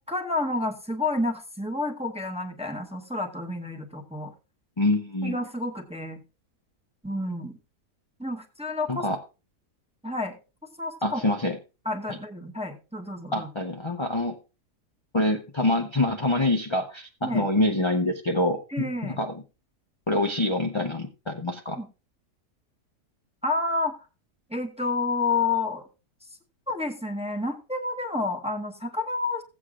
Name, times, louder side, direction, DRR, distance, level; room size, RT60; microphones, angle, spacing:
voice 1, 0.0-4.3 5.2-6.2 7.0-7.5 8.2-9.1 10.0-10.4 10.8-11.3 11.8-13.5 17.2-17.5 18.7-19.2 21.7-21.9 23.4-23.9 24.5-25.9 26.7-29.4, left 2 dB, 5° right, 2 dB, 0.7 m, -29 dB
voice 2, 4.8-5.4 8.9-9.2 11.0-11.6 12.1-12.2 13.3-14.4 15.1-19.3 20.1-21.8, left 1 dB, 40° left, 2 dB, 0.4 m, -26 dB
16.0 x 8.1 x 2.4 m, 0.31 s
omnidirectional pair, 1.7 m